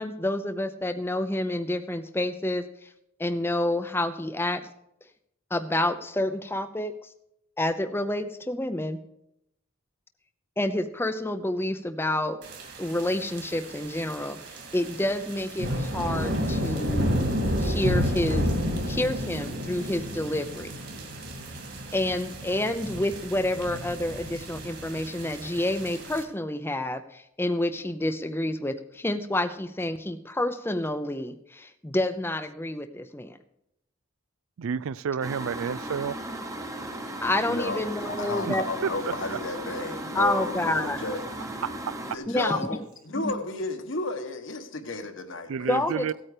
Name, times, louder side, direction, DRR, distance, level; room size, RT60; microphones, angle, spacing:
voice 1, 0.0-2.6 3.2-4.6 5.5-6.9 7.6-9.0 10.6-12.4 12.8-14.4 14.7-17.1 17.6-18.5 18.9-20.7 21.9-33.4 37.2-38.6 40.1-41.0 42.3-42.6 43.2-43.3 45.7-46.1, left 1 dB, 10° left, 0.6 m, -28 dB
sound 1, 12.4-26.2, equal, 50° right, 2.4 m, -31 dB
voice 2, 34.6-36.2 38.5-38.6 39.0-39.1 41.6-41.7 45.5-46.1, right 7 dB, 75° right, 0.4 m, -30 dB
sound 2, 35.2-42.2, right 1 dB, 15° right, 1.0 m, -36 dB
voice 3, 37.5-41.6 42.1-46.1, left 2 dB, 60° left, 1.3 m, -33 dB
15.5 x 8.8 x 5.0 m
head